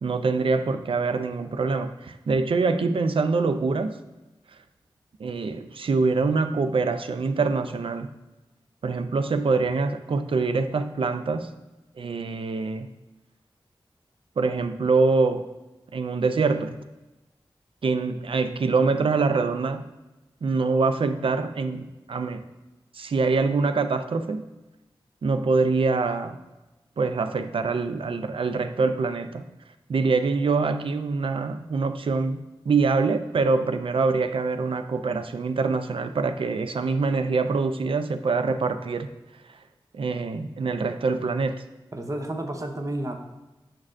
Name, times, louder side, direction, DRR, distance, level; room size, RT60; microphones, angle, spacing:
voice 1, 0.0-3.9 5.2-8.1 8.8-11.5 12.0-12.9 14.4-15.5 15.9-16.8 17.8-19.8 20.4-22.4 22.9-24.4 25.2-26.4 27.0-29.4 29.9-39.1 39.9-41.6, right 4 dB, 75° right, 9 dB, 0.4 m, -24 dB
voice 2, 41.9-43.1, right 1 dB, 35° right, 4 dB, 0.7 m, -31 dB
6.4 x 6.1 x 2.5 m, 1.0 s
wide cardioid pair, 75°, 9 cm